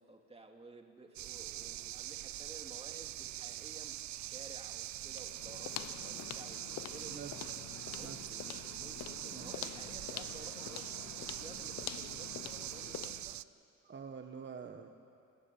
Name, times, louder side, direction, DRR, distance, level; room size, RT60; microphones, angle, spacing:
voice 1, 0.0-7.2 7.9-13.4, right 3 dB, 20° right, 3 dB, 2.4 m, -54 dB
sound 1, 1.2-13.4, right 14 dB, 70° right, 0.6 m, -43 dB
sound 2, 5.1-13.3, left 12 dB, 60° left, 0.6 m, -46 dB
voice 2, 7.1-7.4 8.0-8.2 9.3-9.6 13.8-14.9, right 6 dB, 40° right, 6 dB, 1.3 m, -46 dB
29.0 x 14.0 x 9.3 m, 2.6 s
cardioid pair, 90°, 30 cm